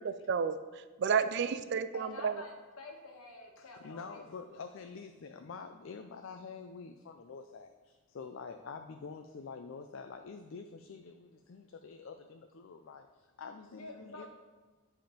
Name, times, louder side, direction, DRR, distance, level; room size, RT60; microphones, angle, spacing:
voice 1, 0.0-2.4, right 6 dB, 50° right, 11 dB, 0.3 m, -32 dB
voice 2, 1.9-4.7 13.6-14.3, left 2 dB, 75° left, 2 dB, 1.3 m, -49 dB
voice 3, 3.6-14.3, left 5 dB, 60° left, 7 dB, 0.4 m, -47 dB
10.0 x 3.6 x 5.1 m, 1.3 s
head